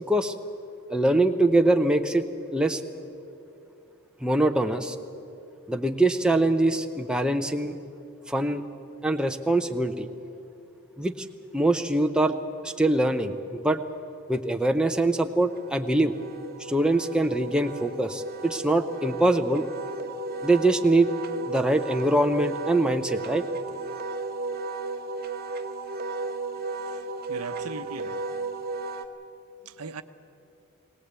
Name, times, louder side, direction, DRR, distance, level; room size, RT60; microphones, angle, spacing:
voice 1, 0.9-2.2 2.5-2.8 4.2-5.0 5.7-7.8 8.3-8.6 9.0-10.1 11.0-11.3 11.5-12.4 12.6-13.8 14.3-16.1 16.6-19.7 20.4-21.1 21.5-23.4, right 2 dB, 5° right, 5 dB, 0.7 m, -23 dB
Wind instrument woodwind instrument, 14.8-29.0, right 3 dB, 45° right, 0.9 m, -34 dB
voice 2, 27.3-28.2 29.8-30.0, right 4 dB, 85° right, 10 dB, 0.8 m, -37 dB
22.0 x 18.0 x 8.3 m, 2.7 s
head